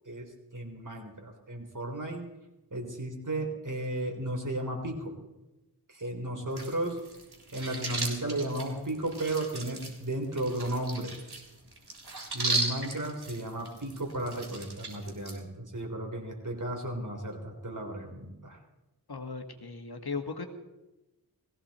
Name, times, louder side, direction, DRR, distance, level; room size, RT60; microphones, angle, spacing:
voice 1, 0.1-2.3 2.7-5.1 5.9-7.0 7.5-11.1 12.3-18.6, right 1 dB, 50° right, 2 dB, 3.9 m, -34 dB
sound 1, 6.5-15.4, right 2 dB, 75° right, 3.5 m, -37 dB
voice 2, 19.1-20.5, left 4 dB, 70° left, 6 dB, 1.7 m, -37 dB
19.5 x 15.5 x 4.3 m, 1.0 s
wide cardioid pair, 50°, 39 cm